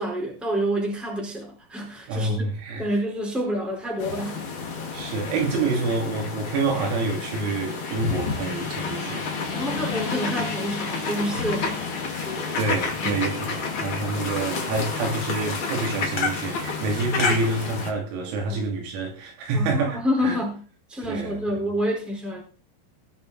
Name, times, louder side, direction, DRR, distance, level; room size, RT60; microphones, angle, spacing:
voice 1, 0.0-2.5 2.8-4.4 9.5-12.6 13.0-13.2 18.5-18.6 19.5-20.6 20.9-22.4, equal, ahead, 3.4 m, -28 dB
voice 2, 2.1-2.9 4.9-9.3 12.6-20.4 21.1-21.4, right 3 dB, 85° right, 5.6 m, -27 dB
sound 1, 4.0-17.9, left 4 dB, 80° left, 1.1 m, -29 dB
19.0 x 6.6 x 4.1 m
omnidirectional pair, 6.0 m